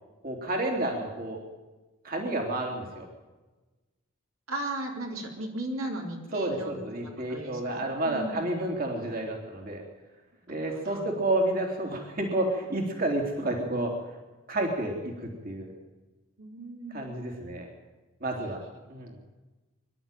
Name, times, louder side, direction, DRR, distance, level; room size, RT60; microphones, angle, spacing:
voice 1, 0.2-1.4 2.0-3.1 6.3-9.8 10.5-13.9 14.5-15.7 16.9-17.7 18.2-18.6 18.9-19.1, right 1 dB, 40° right, 1 dB, 3.4 m, -30 dB
voice 2, 4.5-6.8 7.3-8.4 10.7-11.1 16.4-17.0, right 1 dB, 70° right, 1 dB, 3.8 m, -36 dB
25.0 x 12.0 x 9.3 m, 1.2 s
head